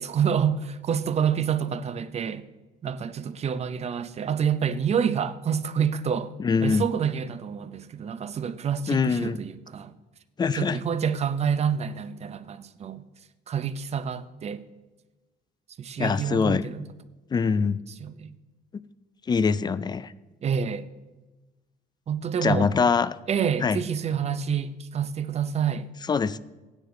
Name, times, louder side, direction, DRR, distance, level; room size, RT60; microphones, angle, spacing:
voice 1, 0.0-2.4 2.8-6.3 6.6-9.9 10.5-13.0 13.5-14.6 15.8-16.9 18.0-18.4 20.4-20.9 22.1-22.7 23.3-25.9, right 7 dB, 40° right, 0.7 m, -28 dB
voice 2, 6.4-6.8 8.9-9.4 10.4-10.8 16.0-16.7 17.3-17.8 19.3-20.1 22.4-23.2 23.6-23.8 26.1-26.4, left 5 dB, 25° left, 0.4 m, -23 dB
16.0 x 9.8 x 3.8 m
cardioid pair, 110°, 17 cm